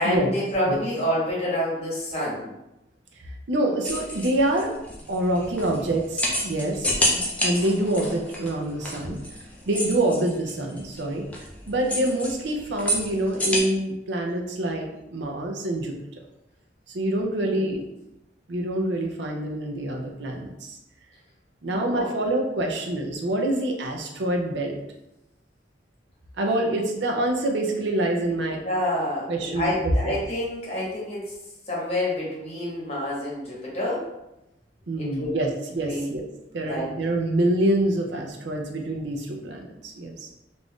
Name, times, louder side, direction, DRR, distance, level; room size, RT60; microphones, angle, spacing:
voice 1, 0.0-2.5 17.4-17.7 21.7-22.1 28.6-31.3 31.7-34.1 35.0-35.3 35.8-36.0 36.5-36.9, left 1 dB, 35° left, -5 dB, 1.0 m, -28 dB
voice 2, 3.2-4.7 5.1-9.2 9.7-11.3 11.7-15.9 16.9-17.8 18.5-20.8 21.6-24.8 26.4-28.6 29.3-29.8 30.0-30.2 34.9-36.3 36.5-40.3, right 1 dB, 75° right, 2 dB, 0.5 m, -26 dB
sound 1, 3.8-13.6, left 1 dB, 10° left, 0.4 m, -29 dB
2.5 x 2.4 x 3.5 m, 0.91 s
head